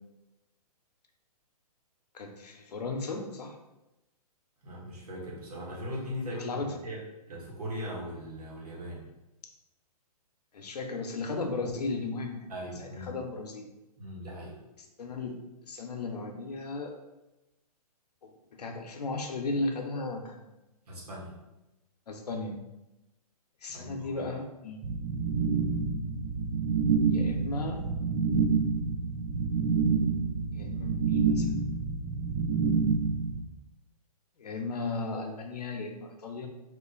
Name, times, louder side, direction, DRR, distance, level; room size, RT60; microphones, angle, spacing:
voice 1, 2.1-3.6 6.4-6.8 10.5-12.5 12.8-13.7 15.0-15.4 15.7-16.9 18.2-20.5 22.1-22.6 23.6-24.9 27.1-27.8 30.5-31.5 34.4-36.5, left 3 dB, 85° left, 4 dB, 0.7 m, -35 dB
voice 2, 4.6-7.0 7.3-9.1 12.5-13.1 14.0-14.6 20.9-21.3 23.7-24.2, equal, 75° right, -4 dB, 1.5 m, -39 dB
sound 1, 24.8-33.4, right 5 dB, 40° right, 0.5 m, -28 dB
3.0 x 2.5 x 3.8 m, 0.99 s
hypercardioid pair, 145°, 20 cm